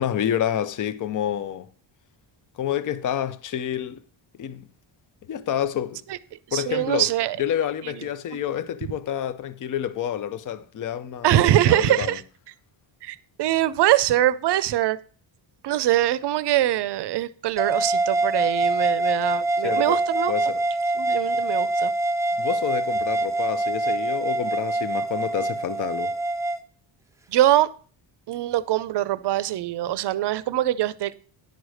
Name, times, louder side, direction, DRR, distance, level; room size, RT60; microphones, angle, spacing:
voice 1, 0.0-1.7 2.6-4.0 4.4-4.7 5.3-6.0 6.5-7.1 7.4-12.2 19.6-20.0 20.3-20.6 22.4-26.1, left 10 dB, 40° left, 0.6 m, -28 dB
voice 2, 6.5-7.4 11.2-12.2 13.0-15.0 15.6-20.3 21.0-21.9 27.3-27.7 28.3-31.1, right 13 dB, 55° right, 0.6 m, -23 dB
sound 1, 17.6-26.6, right 2 dB, 5° right, 0.5 m, -25 dB
10.5 x 4.9 x 6.3 m
cardioid pair, 160°, 49 cm